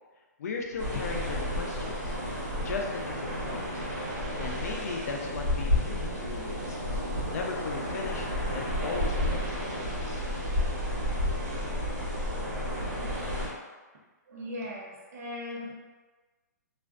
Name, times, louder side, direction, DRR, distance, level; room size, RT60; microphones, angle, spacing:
voice 1, 0.4-2.2 2.6-3.9 4.4-6.8 7.3-8.3 8.5-10.2, left 4 dB, 55° left, 1 dB, 0.4 m, -37 dB
sound 1, 0.8-13.5, left 1 dB, 75° right, 1.1 m, -31 dB
voice 2, 14.3-15.8, left 1 dB, 60° right, -2 dB, 0.7 m, -38 dB
2.4 x 2.1 x 2.4 m, 1.3 s
hypercardioid pair, 165°, 10 cm